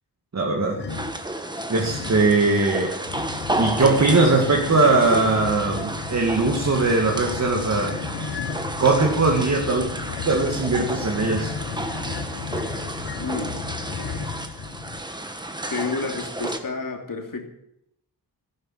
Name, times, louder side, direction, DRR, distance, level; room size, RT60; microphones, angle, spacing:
voice 1, 0.3-0.8 1.7-2.9 3.6-8.0 8.8-9.9 10.3-11.5, right 3 dB, 40° right, 1 dB, 2.2 m, -20 dB
sound 1, 0.7-1.2 1.8-2.4 3.0-15.0, left 6 dB, 75° left, 1.8 m, -34 dB
sound 2, 0.9-16.6, right 1 dB, 10° right, 1.4 m, -32 dB
voice 2, 13.2-13.6 15.7-17.5, left 4 dB, 55° left, 3 dB, 2.9 m, -30 dB
14.5 x 12.0 x 7.5 m, 0.77 s
wide cardioid pair, 135°, 40 cm